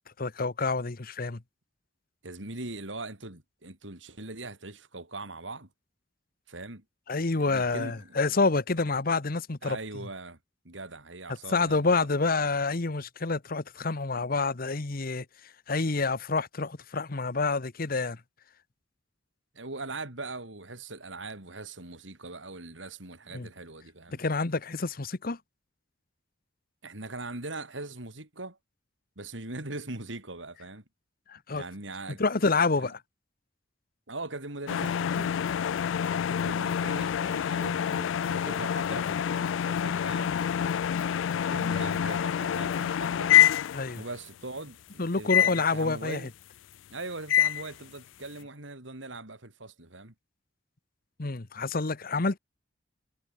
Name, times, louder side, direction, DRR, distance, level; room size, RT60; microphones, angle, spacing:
voice 1, 0.2-1.4 7.1-9.8 11.5-15.2 15.7-18.2 23.3-23.5 24.1-25.4 31.3-31.6 32.2-33.0 43.7-44.0 45.0-46.2 51.2-52.4, left 3 dB, 50° left, 1.1 m, -28 dB
voice 2, 2.2-5.7 6.5-6.8 7.4-8.2 9.6-10.4 10.6-12.0 19.5-24.2 26.8-28.6 29.2-30.8 31.5-32.2 32.8-32.9 34.1-35.3 36.0-40.3 41.5-43.4 43.9-46.3 46.9-50.1, right 2 dB, 85° right, 4.3 m, -41 dB
sound 1, 34.7-44.2 45.3-45.7 47.3-47.7, left 9 dB, 90° left, 0.4 m, -26 dB
head